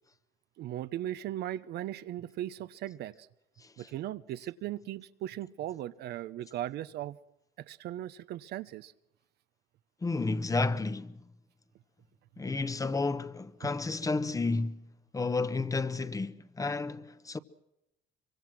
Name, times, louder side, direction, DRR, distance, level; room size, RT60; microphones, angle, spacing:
voice 1, 0.6-3.3 3.8-7.2 7.6-8.9, right 13 dB, 75° right, 0.9 m, -38 dB
voice 2, 10.0-11.2 12.4-14.8 15.1-17.4, left 3 dB, 20° left, 1.0 m, -31 dB
24.5 x 24.0 x 6.2 m
cardioid pair, 110°, 17 cm